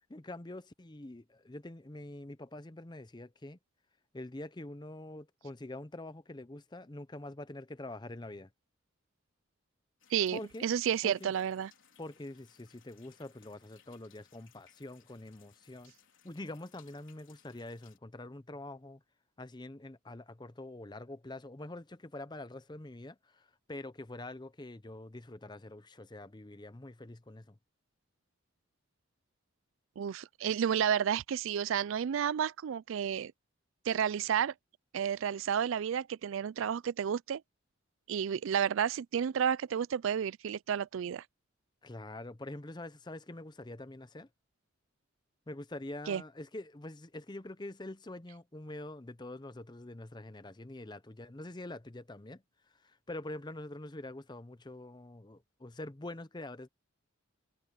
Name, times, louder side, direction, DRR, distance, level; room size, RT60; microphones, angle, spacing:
voice 1, 0.1-3.6 4.1-8.5 10.3-10.7 11.0-11.3 12.0-15.9 16.2-19.0 19.4-27.6 41.8-44.3 45.5-52.4 52.8-56.7, left 2 dB, 20° left, 0.7 m, -45 dB
sound 1, 10.0-18.0, left 8 dB, 65° left, 4.3 m, -65 dB
voice 2, 10.1-11.7 30.0-33.3 33.9-34.5 34.9-37.4 38.1-41.2 46.1-46.2, right 8 dB, 70° right, 0.3 m, -31 dB
head